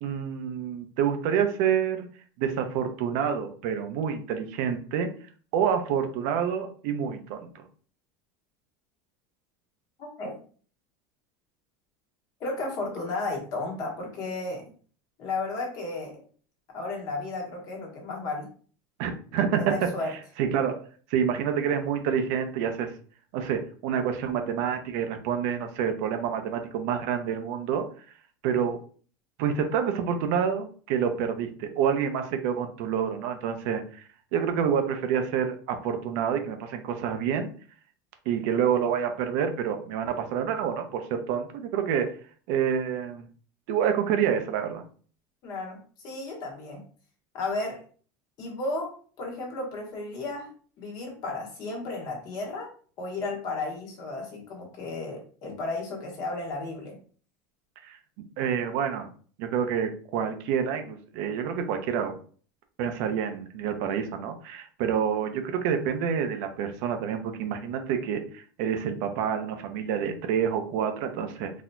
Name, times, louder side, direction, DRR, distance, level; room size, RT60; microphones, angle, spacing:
voice 1, 0.0-2.1 2.4-5.1 5.5-7.6 19.0-19.9 20.4-22.9 23.3-27.9 28.4-28.8 29.4-37.5 38.3-42.2 42.5-43.2 43.7-44.8 57.8-58.0 58.4-59.1 59.4-62.2 62.8-71.5, right 8 dB, 60° right, 6 dB, 0.6 m, -28 dB
voice 2, 10.0-10.4 12.4-14.7 15.2-16.2 16.7-18.5 19.6-20.1 45.4-46.8 47.3-47.8 48.4-50.5 50.8-57.0, left 2 dB, 40° left, 0 dB, 1.3 m, -34 dB
4.1 x 2.8 x 2.3 m, 0.43 s
supercardioid pair, 155°, 10 cm